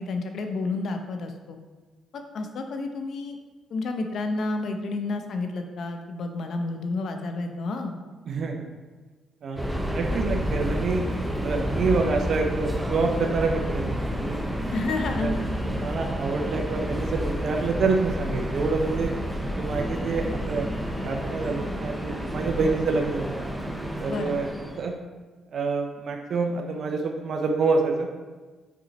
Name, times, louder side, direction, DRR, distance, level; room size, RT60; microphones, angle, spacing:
voice 1, 0.0-1.6 2.1-3.4 3.7-7.9 14.7-15.3 24.1-24.4, left 3 dB, 60° left, 5 dB, 0.7 m, -30 dB
voice 2, 8.3-8.7 9.4-11.1 11.4-14.5 15.2-15.3 15.6-19.1 19.5-20.7 21.0-23.3 24.0-24.5 24.8-24.9 25.5-28.1, right 4 dB, 60° right, 3 dB, 0.7 m, -27 dB
Subway metro underground, 9.6-24.9, equal, ahead, 0.8 m, -30 dB
6.0 x 4.5 x 4.2 m, 1.3 s
cardioid pair, 90°, 0 cm